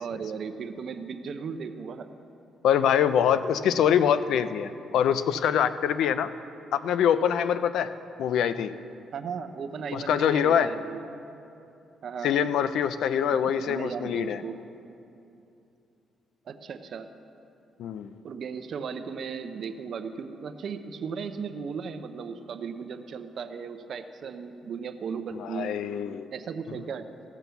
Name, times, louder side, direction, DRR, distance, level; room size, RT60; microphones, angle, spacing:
voice 1, 0.0-2.1 9.1-11.0 12.0-12.3 13.2-14.6 16.5-17.1 18.2-25.8 26.3-27.1, right 6 dB, 60° right, 8 dB, 0.7 m, -36 dB
voice 2, 2.6-6.3 6.7-7.9 8.2-8.7 9.9-10.7 12.2-14.4 17.8-18.1 25.3-26.3, left 8 dB, 80° left, 13 dB, 0.4 m, -24 dB
15.5 x 6.0 x 6.9 m, 2.7 s
cardioid pair, 90°, 0 cm